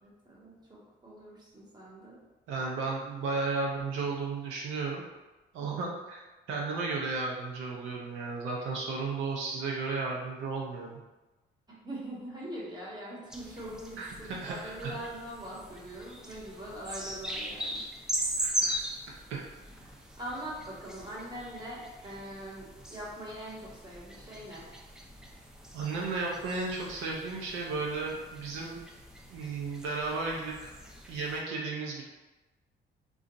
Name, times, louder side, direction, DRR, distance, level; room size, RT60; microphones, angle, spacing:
voice 1, 0.0-2.2 5.6-5.8 11.7-17.8 20.2-24.6, right 1 dB, 20° right, -5 dB, 1.2 m, -42 dB
voice 2, 2.5-5.0 5.5-11.0 14.0-15.0 18.4-18.8 19.3-19.4 25.7-28.8 29.3-30.7 31.1-32.0, right 3 dB, 90° right, -2 dB, 0.6 m, -34 dB
sound 1, 13.3-31.4, right 1 dB, 5° right, 0.4 m, -40 dB
2.5 x 2.3 x 3.8 m, 1.1 s
cardioid pair, 90°, 20 cm